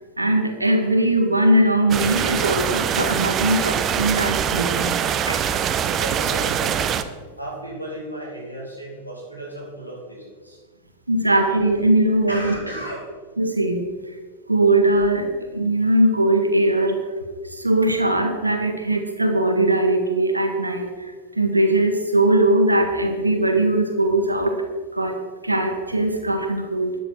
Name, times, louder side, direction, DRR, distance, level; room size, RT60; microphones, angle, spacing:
voice 1, 0.2-5.0 5.2-5.4 11.1-12.5 13.4-13.9 14.5-17.0 17.5-24.5 24.9-27.0, right 1 dB, 85° right, 4 dB, 1.6 m, -20 dB
sound 1, 1.9-7.0, right 8 dB, 30° right, 0.7 m, -23 dB
voice 2, 6.0-6.8 7.4-10.6 12.3-13.1, right 1 dB, 90° left, -4 dB, 4.2 m, -34 dB
13.0 x 9.9 x 4.6 m, 1.4 s
figure-of-eight pair, 90°, 0 cm